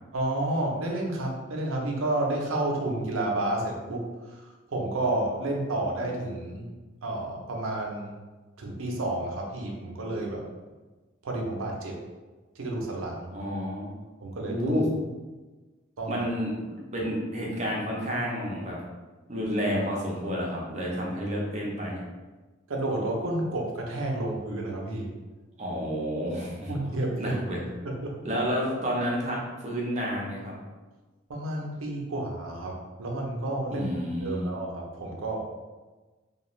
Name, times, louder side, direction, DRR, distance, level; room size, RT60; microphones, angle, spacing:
voice 1, 0.1-6.7 7.0-8.1 8.6-10.4 11.2-12.0 12.6-13.3 14.2-14.8 16.0-16.2 22.7-25.1 26.7-27.4 27.8-28.1 31.3-35.5, right 1 dB, 90° right, 0 dB, 0.6 m, -30 dB
voice 2, 13.3-13.9 14.5-14.9 16.1-18.8 19.3-22.0 25.6-26.8 27.2-27.6 28.2-30.5 33.7-34.5, equal, 35° right, -3 dB, 0.5 m, -30 dB
2.4 x 2.3 x 3.0 m, 1.2 s
head